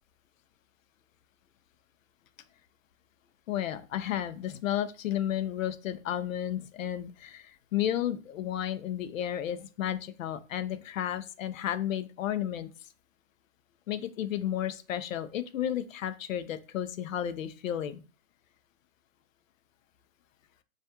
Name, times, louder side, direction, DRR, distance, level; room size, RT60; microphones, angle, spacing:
voice 1, 3.5-12.7 13.9-18.0, left 11 dB, 75° left, 12 dB, 0.5 m, -32 dB
2.3 x 2.2 x 2.8 m, 0.34 s
hypercardioid pair, 125°, 40 cm